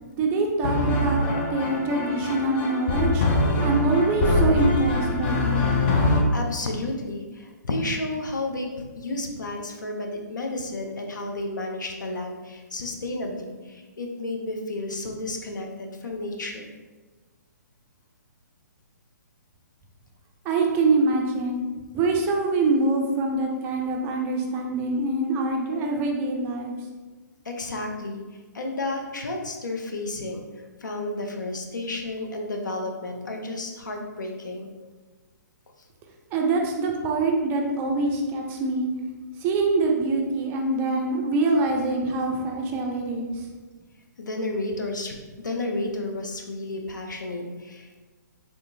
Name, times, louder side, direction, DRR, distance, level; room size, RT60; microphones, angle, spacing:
voice 1, 0.1-3.2 3.6-5.6 20.4-21.6 21.9-26.7 36.3-38.9 39.4-43.5, right 3 dB, 20° right, 1 dB, 0.4 m, -24 dB
sound 1, 0.6-6.2, left 2 dB, 35° left, 0.5 m, -23 dB
voice 2, 6.3-8.7 9.0-16.7 27.4-28.2 28.5-30.5 30.8-34.7 44.2-48.0, left 2 dB, 80° left, 3 dB, 0.6 m, -32 dB
3.6 x 2.7 x 2.6 m, 1.3 s
hypercardioid pair, 135°, 10 cm